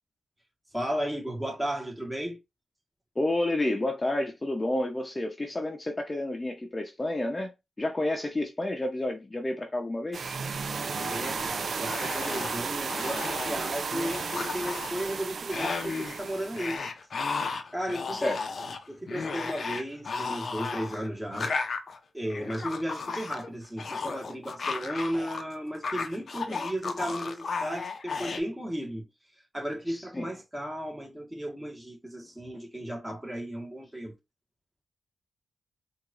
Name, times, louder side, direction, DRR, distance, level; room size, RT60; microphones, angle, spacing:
voice 1, 0.7-2.4 10.8-16.8 17.7-18.3 18.9-21.5 22.1-29.1 29.5-34.1, equal, 10° right, 1.6 m, -34 dB
voice 2, 3.2-7.5 7.8-10.3 18.1-18.4 29.9-30.3, left 1 dB, 25° left, 0.8 m, -30 dB
sound 1, 10.1-16.8, right 5 dB, 65° right, 0.4 m, -34 dB
sound 2, 10.9-11.5 11.8-12.6 12.9-13.6 13.9-15.1 15.5-16.2 16.5-25.4 25.7-28.4, left 4 dB, 65° left, 0.6 m, -34 dB
4.5 x 2.6 x 2.5 m
cardioid pair, 60°, 0 cm